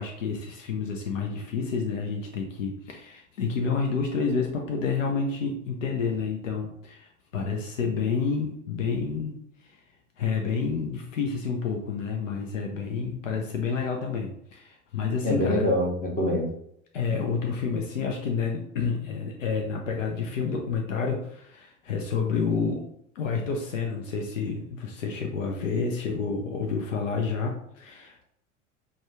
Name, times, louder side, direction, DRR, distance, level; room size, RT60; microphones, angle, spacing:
voice 1, 0.0-9.8 10.2-15.7 16.9-22.9 23.1-28.2, left 5 dB, 70° left, 2 dB, 0.7 m, -29 dB
voice 2, 15.2-16.5, left 1 dB, 20° left, -2 dB, 1.0 m, -24 dB
4.9 x 2.3 x 3.4 m, 0.72 s
figure-of-eight pair, 80°, 39 cm